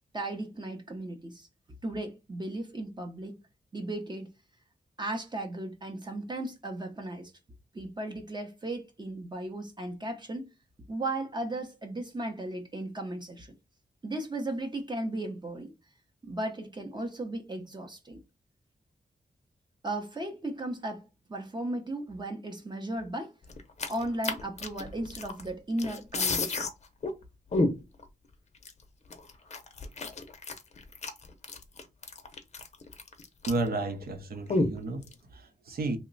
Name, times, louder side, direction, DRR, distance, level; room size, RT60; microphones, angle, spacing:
voice 1, 0.1-1.5 1.8-3.4 3.7-4.3 5.0-7.3 7.7-10.5 10.9-13.5 14.0-15.7 16.2-18.2 19.8-21.0 21.3-23.3 23.9-26.7, right 1 dB, 25° right, 0.7 m, -36 dB
sound 1, 23.5-25.5 25.8-26.7 27.0-27.1 27.5-28.0 28.6-28.7 29.1-33.7 34.0-34.1 34.5-35.1, left 2 dB, 45° left, 0.6 m, -31 dB
voice 2, 33.5-36.0, right 2 dB, 70° right, 0.7 m, -32 dB
2.9 x 2.2 x 3.8 m
wide cardioid pair, 115°, 16 cm